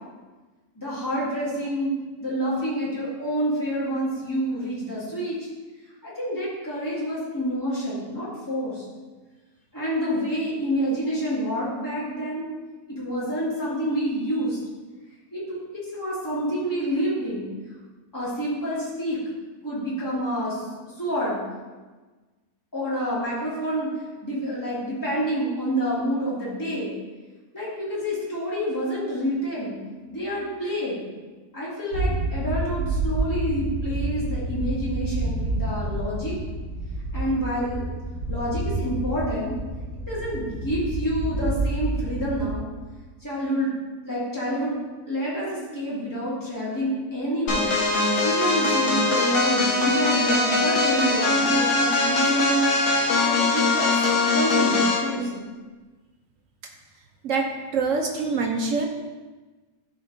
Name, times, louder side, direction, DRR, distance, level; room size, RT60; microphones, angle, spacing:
voice 1, 0.8-1.9 2.2-5.5 6.0-8.9 9.7-12.5 12.9-14.6 15.3-17.5 18.1-19.2 19.6-20.6 21.0-21.4 22.7-23.9 24.2-26.9 27.5-29.8 30.1-31.0 31.5-36.3 37.1-37.8 38.3-39.5 40.0-42.7 43.2-43.7 44.0-44.8 45.1-47.7 48.2-52.5 53.2-54.0 54.3-55.4, equal, 10° left, -9 dB, 2.2 m, -28 dB
sound 1, 31.9-42.6, right 2 dB, 70° left, 2.3 m, -29 dB
sound 2, 47.5-55.1, left 2 dB, 50° left, 1.4 m, -21 dB
voice 2, 57.7-58.9, right 4 dB, 65° right, 2 dB, 0.8 m, -24 dB
11.0 x 4.4 x 2.6 m, 1.3 s
omnidirectional pair, 1.8 m